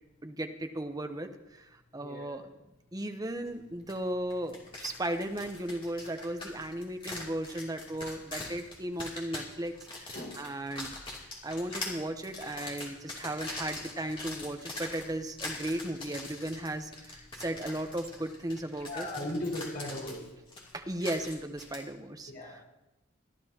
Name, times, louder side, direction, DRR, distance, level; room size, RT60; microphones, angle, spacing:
voice 1, 0.2-2.4 2.9-10.9 11.4-19.1 20.7-22.6, right 1 dB, 20° right, 6 dB, 0.8 m, -36 dB
sound 1, 3.9-4.0 4.3-21.8, left 2 dB, 25° left, 2.8 m, -43 dB
voice 2, 18.8-20.2 22.3-22.7, left 1 dB, 50° left, -2 dB, 4.7 m, -37 dB
23.5 x 12.0 x 2.9 m, 0.98 s
head